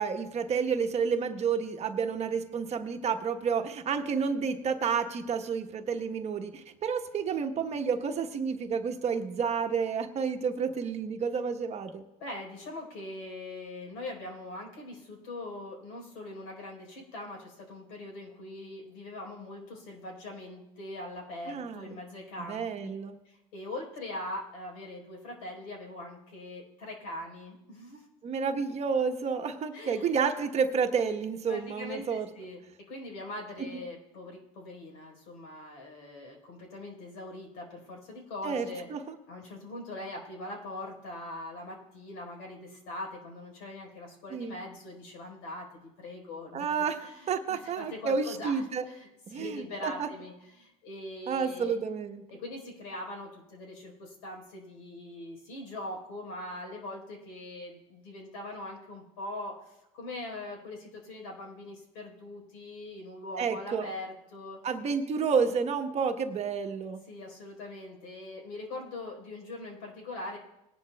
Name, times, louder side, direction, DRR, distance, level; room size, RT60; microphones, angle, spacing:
voice 1, 0.0-12.0 21.5-22.0 22.5-23.2 28.2-32.3 38.4-39.0 44.3-44.5 46.5-47.0 47.3-48.8 49.3-50.1 51.3-52.2 63.4-63.9 64.6-67.0, right 6 dB, 40° right, 6 dB, 1.1 m, -30 dB
voice 2, 12.2-22.7 23.2-28.1 29.7-30.1 31.5-32.6 32.9-38.9 39.3-51.8 52.3-64.6 67.1-70.4, left 1 dB, 80° left, 0 dB, 4.2 m, -42 dB
19.5 x 11.5 x 2.3 m, 0.90 s
supercardioid pair, 100°, 18 cm